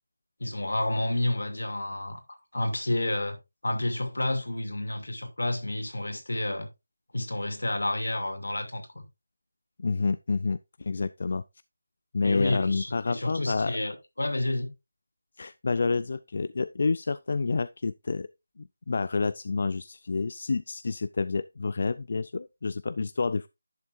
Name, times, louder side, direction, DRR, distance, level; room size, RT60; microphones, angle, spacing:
voice 1, 0.4-2.2 2.5-6.7 7.1-8.8 12.2-14.7, left 1 dB, 80° left, 2.4 m, -30 dB
voice 2, 9.8-11.4 12.1-13.8 15.4-18.3 18.6-23.5, left 4 dB, 50° left, 0.3 m, -29 dB
11.0 x 7.1 x 2.5 m
figure-of-eight pair, 165°, 0 cm